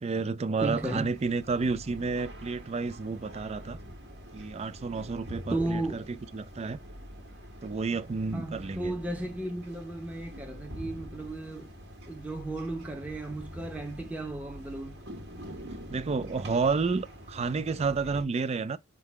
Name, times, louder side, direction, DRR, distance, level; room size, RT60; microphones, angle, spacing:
voice 1, 0.0-3.8 4.3-6.0 6.3-6.8 7.6-9.0 15.9-18.8, right 4 dB, 30° right, 0.4 m, -30 dB
voice 2, 0.6-1.1 5.5-6.0 8.3-11.7 12.1-15.0, right 2 dB, 5° right, 0.9 m, -34 dB
sound 1, 0.6-18.2, equal, 60° right, 1.6 m, -45 dB
5.4 x 3.9 x 4.7 m
head